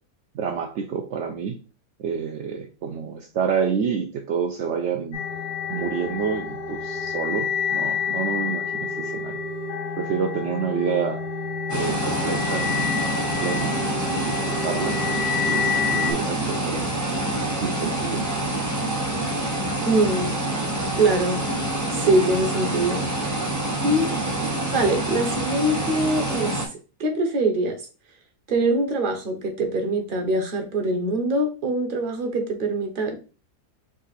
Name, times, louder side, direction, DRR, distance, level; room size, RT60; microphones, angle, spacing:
voice 1, 0.3-1.6 2.0-5.2 5.7-9.4 10.0-11.3 11.7-12.9 13.4-15.0 15.5-16.9 17.6-18.3 20.5-20.8, right 6 dB, 70° right, 4 dB, 0.6 m, -28 dB
sound 1, 5.1-16.1, left 6 dB, 80° left, 1.6 m, -28 dB
sound 2, 11.7-26.7, right 1 dB, 20° right, 0.6 m, -26 dB
voice 2, 19.9-20.3 20.9-21.4 21.9-23.4 23.8-24.1 24.7-26.6 27.0-27.8 28.5-33.2, right 2 dB, 40° right, 4 dB, 0.9 m, -23 dB
5.1 x 2.5 x 4.0 m, 0.34 s
omnidirectional pair, 1.7 m